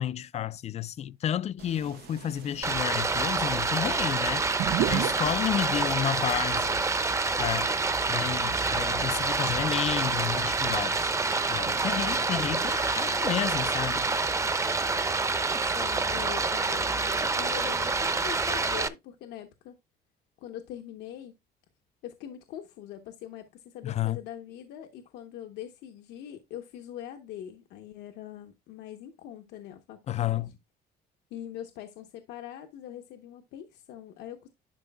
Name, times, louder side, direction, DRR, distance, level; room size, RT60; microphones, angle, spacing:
voice 1, 0.0-6.8 7.4-7.7 8.1-11.1 11.5-14.1 23.8-24.2 30.1-30.5, left 10 dB, 40° left, 0.4 m, -31 dB
sound 1, 1.6-7.0, right 14 dB, 70° right, 0.4 m, -36 dB
Stream, 2.6-18.9, right 3 dB, 15° right, 0.7 m, -27 dB
voice 2, 5.1-5.5 11.7-12.2 14.1-14.5 15.5-19.8 20.4-21.3 22.0-30.4 31.3-34.5, left 11 dB, 85° left, 1.0 m, -43 dB
11.5 x 5.3 x 2.3 m
cardioid pair, 110°, 17 cm